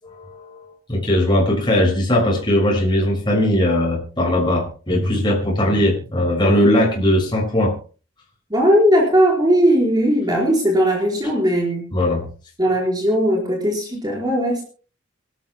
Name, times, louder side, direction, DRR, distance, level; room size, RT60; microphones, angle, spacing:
voice 1, 0.0-7.7 11.9-12.2, left 1 dB, 25° left, -2 dB, 6.6 m, -19 dB
voice 2, 8.5-11.9 12.6-14.6, equal, 20° right, -2 dB, 4.7 m, -18 dB
27.0 x 12.5 x 2.2 m, 0.38 s
head